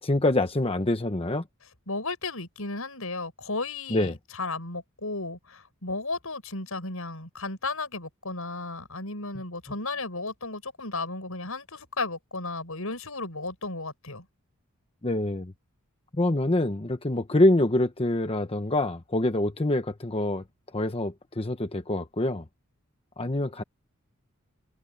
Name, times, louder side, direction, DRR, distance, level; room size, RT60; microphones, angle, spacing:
voice 1, 0.0-1.4 3.9-4.1 15.0-15.5 16.1-20.4 20.7-22.4 23.2-23.6, left 1 dB, 25° left, 1.0 m, -25 dB
voice 2, 1.9-14.3, left 3 dB, 80° left, 7.0 m, -34 dB
head